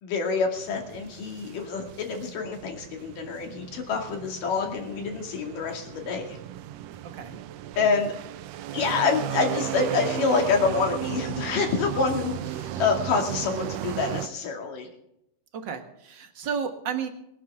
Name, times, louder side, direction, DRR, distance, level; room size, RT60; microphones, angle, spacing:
voice 1, 0.0-6.4 7.8-8.1 8.7-14.9, left 4 dB, 85° left, 2 dB, 4.0 m, -27 dB
sound 1, 0.6-14.3, right 12 dB, 80° right, 1.5 m, -35 dB
voice 2, 7.0-7.4 15.5-17.1, right 7 dB, 45° right, 6 dB, 1.7 m, -32 dB
22.5 x 10.5 x 3.6 m, 0.79 s
omnidirectional pair, 3.7 m